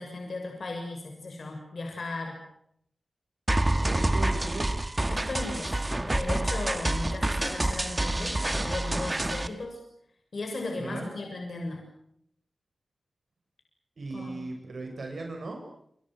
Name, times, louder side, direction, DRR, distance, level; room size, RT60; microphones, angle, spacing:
voice 1, 0.0-2.4 5.1-5.8 6.1-9.8 10.3-11.8 14.1-14.3, left 2 dB, 60° left, 2 dB, 7.1 m, -36 dB
sound 1, 3.5-9.5, right 1 dB, 20° right, 1.7 m, -27 dB
voice 2, 3.8-4.7 10.8-11.1 14.0-15.6, right 2 dB, 65° right, 3 dB, 7.3 m, -37 dB
28.5 x 28.5 x 6.5 m, 0.70 s
wide cardioid pair, 100°, 0 cm